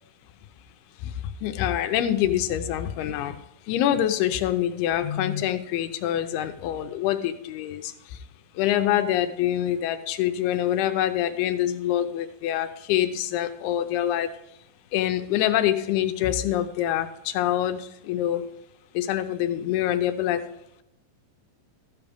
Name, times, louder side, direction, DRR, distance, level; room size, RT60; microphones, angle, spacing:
voice 1, 1.4-3.4 3.7-7.9 8.6-14.3 14.9-18.4 18.9-20.4, left 11 dB, 80° left, 8 dB, 2.5 m, -25 dB
13.5 x 8.2 x 3.5 m, 0.80 s
omnidirectional pair, 5.0 m